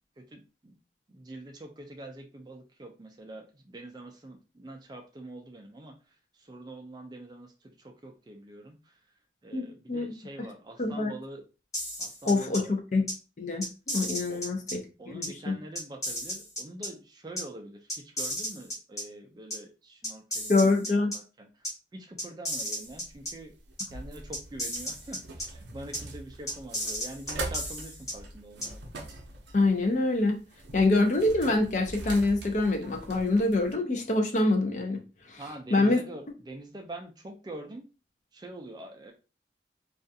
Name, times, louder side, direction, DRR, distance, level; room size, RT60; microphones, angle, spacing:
voice 1, 0.2-0.8 1.1-5.9 6.4-9.0 9.4-11.4 12.0-12.7 14.3-14.4 15.0-20.5 21.1-23.5 23.9-28.8 35.4-37.8 38.3-39.1, right 1 dB, 25° right, 4 dB, 0.3 m, -45 dB
voice 2, 9.5-10.1 10.8-11.1 12.2-13.1 13.4-14.8 15.1-15.6 20.5-21.1 29.5-30.4 30.7-35.0 35.3-35.4 35.7-36.0, left 2 dB, 40° left, 4 dB, 0.5 m, -25 dB
sound 1, 11.7-12.6 13.1-13.2 13.6-14.7 15.2-15.3 15.8-16.9 17.4-17.5 17.9-19.0 19.5-19.6 20.0-21.2 21.6-21.7 22.2-23.3 23.8-23.9 24.3-25.5 25.9-26.0 26.5-28.1 28.6-28.7, equal, 20° left, 1.1 m, -34 dB
sound 2, 22.8-33.7, right 2 dB, 80° right, 0.5 m, -42 dB
2.4 x 2.3 x 2.6 m, 0.32 s
head